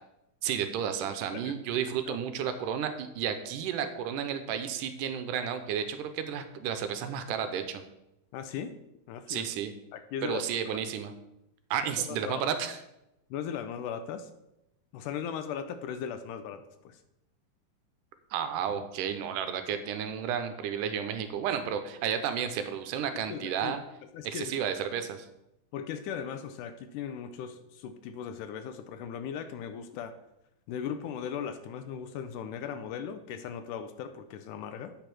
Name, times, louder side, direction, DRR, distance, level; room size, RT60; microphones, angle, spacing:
voice 1, 0.4-7.8 9.3-9.7 10.2-11.1 11.7-12.8 18.3-23.8 24.2-25.3, right 8 dB, 80° right, 9 dB, 2.2 m, -32 dB
voice 2, 1.3-2.2 2.5-2.6 8.3-8.7 9.1-9.5 9.9-10.8 12.1-12.4 13.3-14.3 14.9-17.0 23.1-23.7 24.1-24.6 25.7-30.2 30.7-35.0, left 8 dB, 80° left, 10 dB, 2.0 m, -38 dB
8.8 x 5.2 x 6.0 m, 0.87 s
omnidirectional pair, 3.9 m